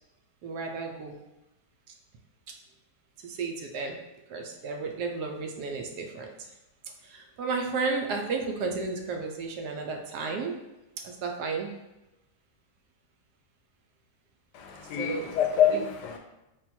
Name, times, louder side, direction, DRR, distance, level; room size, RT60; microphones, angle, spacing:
voice 1, 0.4-1.2 3.2-4.0 4.3-6.5 7.0-10.6 11.0-11.7 15.0-15.4 15.7-15.9, right 4 dB, 80° right, 3 dB, 1.2 m, -33 dB
voice 2, 14.5-16.2, left 8 dB, 85° left, 4 dB, 1.2 m, -26 dB
3.7 x 2.5 x 4.2 m, 0.96 s
omnidirectional pair, 1.8 m